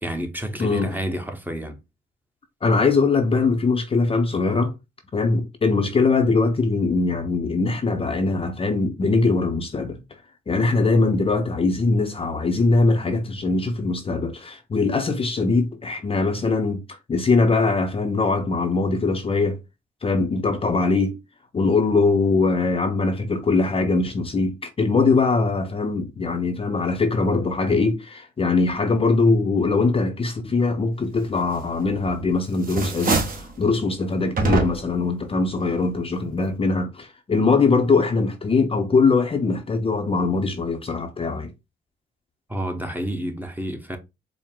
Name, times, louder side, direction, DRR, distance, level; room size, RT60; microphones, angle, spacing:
voice 1, 0.0-1.8 42.5-44.0, right 1 dB, 10° right, 0.8 m, -29 dB
voice 2, 0.6-0.9 2.6-4.7 5.1-10.0 10.5-19.6 20.0-21.2 21.5-41.5, left 3 dB, 30° left, 0.6 m, -21 dB
sound 1, 31.8-32.2 32.5-33.5 34.4-35.0, right 3 dB, 45° right, 1.0 m, -24 dB
4.5 x 2.1 x 3.5 m
cardioid pair, 90°, 20 cm